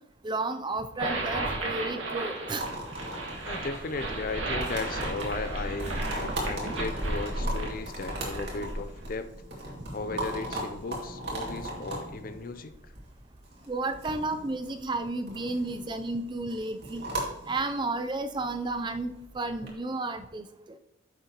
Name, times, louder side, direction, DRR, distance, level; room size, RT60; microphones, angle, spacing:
voice 1, 0.2-2.7 13.7-17.1 17.5-20.5, right 2 dB, 25° right, 8 dB, 0.5 m, -32 dB
sound 1, 1.0-9.1, right 2 dB, 80° right, 1.7 m, -34 dB
sound 2, 2.5-19.7, right 1 dB, 55° right, 2.3 m, -39 dB
voice 2, 3.5-9.3 9.9-12.7, left 3 dB, 45° left, 10 dB, 0.5 m, -36 dB
9.4 x 6.6 x 3.0 m, 0.81 s
head